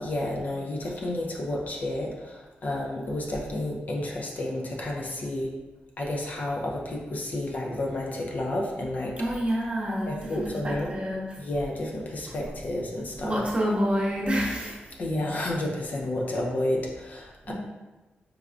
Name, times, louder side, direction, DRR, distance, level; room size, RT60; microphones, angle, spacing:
voice 1, 0.0-5.5 6.0-9.4 10.1-10.9 11.4-13.5 15.0-17.5, left 1 dB, 50° left, -1 dB, 0.5 m, -31 dB
voice 2, 9.2-11.2 13.2-14.8 17.5-17.6, equal, 30° right, -4 dB, 0.8 m, -28 dB
4.7 x 2.2 x 2.5 m, 1.1 s
wide cardioid pair, 115°, 4 cm